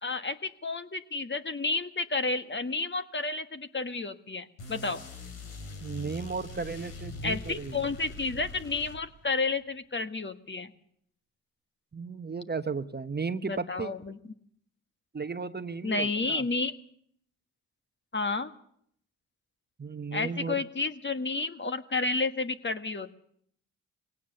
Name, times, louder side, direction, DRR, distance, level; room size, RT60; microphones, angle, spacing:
voice 1, 0.0-5.0 7.2-10.7 13.4-14.2 15.8-16.7 18.1-18.5 20.1-23.2, left 3 dB, 30° left, 9 dB, 1.5 m, -31 dB
sound 1, 4.6-9.4, left 2 dB, 90° left, 2.7 m, -42 dB
voice 2, 5.8-7.8 11.9-13.9 15.1-16.5 19.8-20.6, right 4 dB, 30° right, 11 dB, 1.0 m, -35 dB
21.5 x 17.5 x 6.9 m, 0.66 s
hypercardioid pair, 45°, 35 cm